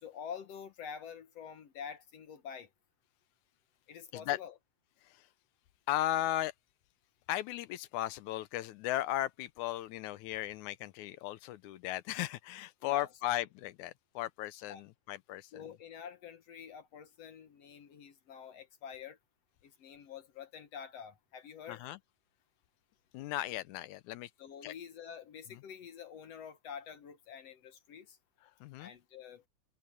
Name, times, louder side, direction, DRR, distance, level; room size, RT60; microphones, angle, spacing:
voice 1, 0.0-2.7 3.9-4.6 12.8-13.1 14.7-14.8 15.5-19.2 19.6-21.8 24.4-28.2 28.8-29.4, left 7 dB, 65° left, 2.0 m, -47 dB
voice 2, 5.9-6.5 7.3-15.7 21.7-22.0 23.1-24.3 24.6-24.7 28.6-28.9, left 14 dB, 80° left, 2.1 m, -36 dB
omnidirectional pair, 3.5 m